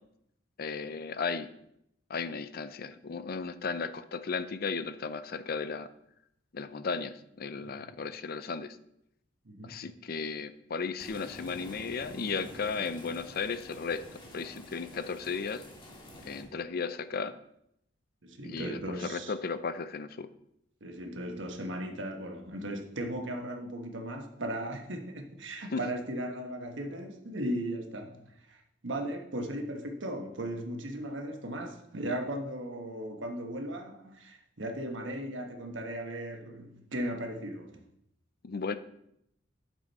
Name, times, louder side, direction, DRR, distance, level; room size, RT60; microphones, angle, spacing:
voice 1, 0.6-1.5 2.1-5.9 6.5-8.8 9.6-14.0 14.3-15.6 16.3-17.3 18.4-20.3 25.7-25.8 38.4-38.8, left 5 dB, 50° left, 0.5 m, -35 dB
voice 2, 9.4-9.8 18.2-19.3 20.8-37.8, right 1 dB, 75° right, 1.3 m, -37 dB
sound 1, 11.0-16.4, left 1 dB, 25° left, 1.9 m, -48 dB
11.0 x 6.2 x 4.2 m
head